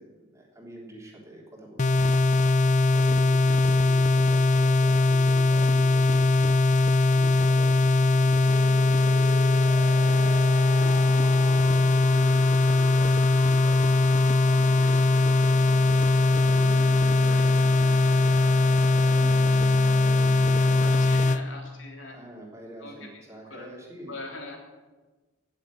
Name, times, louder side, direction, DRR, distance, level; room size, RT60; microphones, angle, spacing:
voice 1, 0.0-2.2 2.9-6.6 7.1-9.7 11.0-14.0 14.4-15.8 16.3-21.3 22.1-24.2, right 1 dB, 15° right, -2 dB, 3.2 m, -45 dB
sound 1, 1.8-21.4, left 2 dB, 35° left, 0.5 m, -21 dB
sound 2, 8.5-21.2, left 1 dB, 15° left, 1.1 m, -39 dB
voice 2, 10.8-11.1 14.7-15.1 17.0-17.5 20.8-22.2 22.8-23.2 23.5-23.7 24.1-24.6, left 2 dB, 75° left, 1 dB, 3.4 m, -42 dB
18.0 x 7.4 x 8.5 m, 1.3 s
head